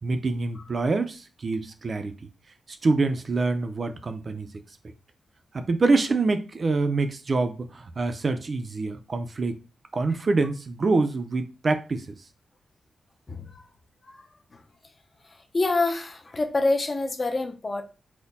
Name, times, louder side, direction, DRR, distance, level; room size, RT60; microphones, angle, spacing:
voice 1, 0.0-2.1 2.8-4.5 5.5-9.6 9.9-12.2, right 3 dB, 45° right, 0.6 m, -25 dB
voice 2, 13.3-13.6 14.0-14.6 15.2-17.8, left 2 dB, 35° left, 0.7 m, -27 dB
4.2 x 2.2 x 4.0 m
wide cardioid pair, 110°, 0 cm